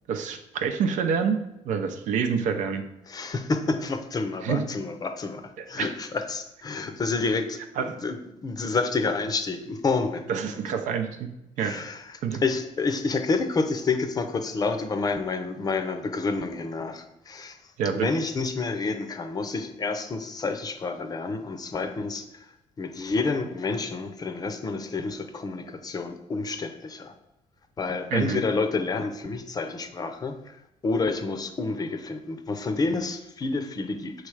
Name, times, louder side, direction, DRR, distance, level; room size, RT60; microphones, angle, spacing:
voice 1, 0.1-1.4 1.6-2.8 4.4-4.6 5.6-5.9 7.8-8.0 10.3-11.3 11.6-11.8 12.2-12.4 17.8-18.1 28.1-28.4, right 6 dB, 75° right, 7 dB, 0.7 m, -27 dB
voice 2, 3.1-8.2 8.4-10.2 11.6-12.0 12.4-17.6 18.0-22.2 22.8-27.1 27.8-30.5 30.8-34.1, left 3 dB, 30° left, 8 dB, 0.6 m, -29 dB
6.4 x 3.2 x 4.8 m, 0.87 s
cardioid pair, 115°, 13 cm